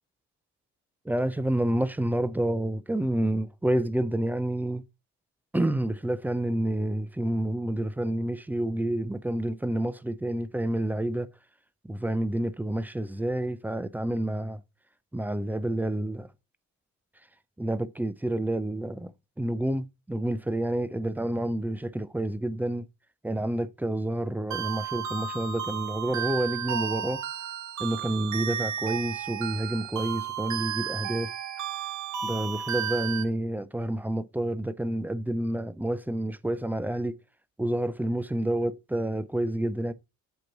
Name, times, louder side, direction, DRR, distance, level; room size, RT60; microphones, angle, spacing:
voice 1, 1.1-4.8 5.5-11.3 11.9-14.6 15.1-16.3 17.6-19.1 19.4-22.9 23.2-27.2 27.8-31.3 32.2-37.2 37.6-39.9, right 1 dB, 5° right, 0.5 m, -29 dB
sound 1, 24.5-33.2, right 8 dB, 70° right, 1.3 m, -33 dB
8.1 x 3.0 x 5.8 m
cardioid pair, 90°, 30 cm